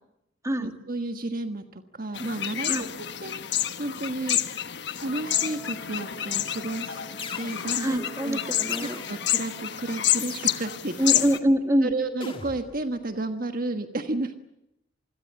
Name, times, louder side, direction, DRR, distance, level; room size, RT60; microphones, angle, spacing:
voice 1, 0.6-4.4 5.0-7.0 7.4-8.4 8.8-11.2 11.8-14.3, right 2 dB, 50° right, 7 dB, 1.4 m, -32 dB
sound 1, 2.1-11.4, left 11 dB, 65° left, 1.2 m, -29 dB
Wind instrument woodwind instrument, 5.1-10.6, left 1 dB, ahead, 6.8 m, -48 dB
sound 2, 5.9-6.4 7.2-8.0 8.7-9.4 10.2-10.9 12.2-12.9, left 4 dB, 30° left, 2.2 m, -41 dB
voice 2, 7.8-9.0 11.0-11.9, equal, 15° right, 6 dB, 2.0 m, -24 dB
27.0 x 21.5 x 7.7 m, 0.86 s
head